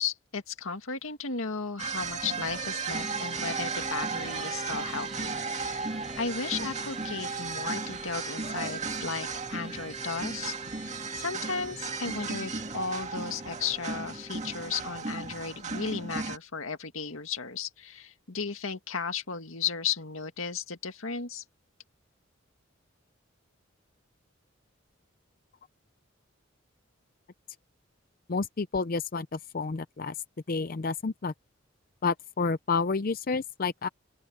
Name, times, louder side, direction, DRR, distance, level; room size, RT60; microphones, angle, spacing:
voice 1, 0.0-5.8 6.2-21.4, left 5 dB, 90° left, 2.1 m, -35 dB
sound 1, 1.8-16.4, right 4 dB, 35° right, 2.0 m, -35 dB
sound 2, 2.9-15.0, equal, ahead, 1.6 m, -46 dB
voice 2, 28.3-30.1 30.5-31.3 32.0-33.9, left 4 dB, 45° left, 0.5 m, -30 dB
open air
head